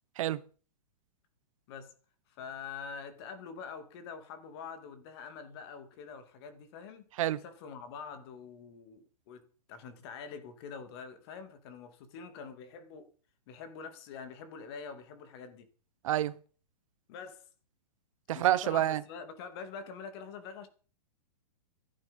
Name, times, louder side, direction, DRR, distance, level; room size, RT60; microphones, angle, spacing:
voice 1, 2.3-9.4 9.7-13.1 13.5-15.7 17.1-17.5 18.3-20.7, left 6 dB, 40° left, 2.5 m, -45 dB
voice 2, 18.3-19.0, right 13 dB, 50° right, 1.1 m, -28 dB
14.0 x 11.5 x 5.3 m
hypercardioid pair, 160°, 21 cm